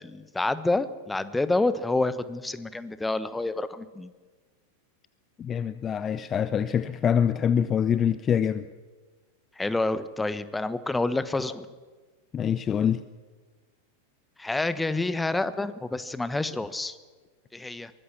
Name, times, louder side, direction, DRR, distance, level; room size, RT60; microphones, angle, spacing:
voice 1, 0.0-4.1 9.6-11.7 14.4-17.0 17.5-17.9, left 2 dB, 5° left, 14 dB, 1.1 m, -28 dB
voice 2, 5.4-8.7 12.3-13.0, left 8 dB, 25° left, 14 dB, 0.7 m, -25 dB
23.5 x 19.0 x 7.3 m, 1.4 s
figure-of-eight pair, 90°, 0 cm